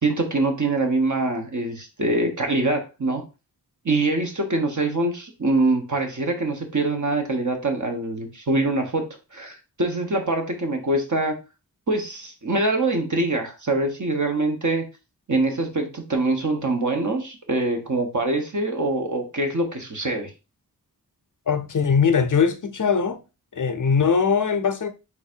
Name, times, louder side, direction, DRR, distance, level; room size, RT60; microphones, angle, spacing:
voice 1, 0.0-3.2 3.8-11.3 11.9-14.9 15.3-20.3, right 2 dB, 50° right, 1.3 m, -24 dB
voice 2, 21.5-23.2 23.5-24.9, left 6 dB, 50° left, 0.6 m, -21 dB
4.0 x 2.6 x 4.4 m
wide cardioid pair, 55°, 39 cm